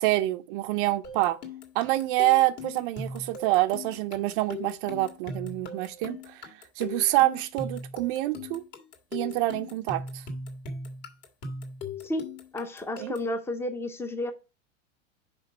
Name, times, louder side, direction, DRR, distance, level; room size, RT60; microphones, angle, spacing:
voice 1, 0.0-1.4 1.7-6.4 6.8-8.6 9.1-10.2 13.0-13.1, right 17 dB, 45° right, 0.6 m, -26 dB
sound 1, 1.0-13.4, left 3 dB, 40° left, 1.9 m, -39 dB
voice 2, 12.5-14.3, left 1 dB, 5° left, 0.7 m, -31 dB
5.2 x 5.1 x 6.1 m
supercardioid pair, 145°, 38 cm